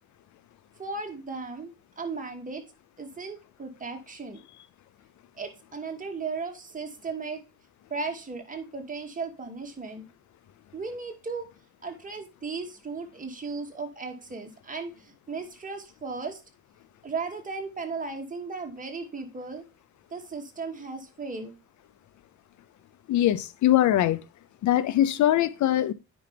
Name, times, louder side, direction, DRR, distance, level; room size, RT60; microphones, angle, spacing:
voice 1, 0.8-2.6 3.0-4.4 5.4-7.4 7.9-10.1 10.7-11.5 11.8-16.4 17.0-19.6 20.1-21.5, right 4 dB, 25° right, 2.3 m, -36 dB
voice 2, 23.1-24.2 24.6-25.9, left 12 dB, 70° left, 0.7 m, -22 dB
9.3 x 5.4 x 3.4 m
cardioid pair, 90°, 30 cm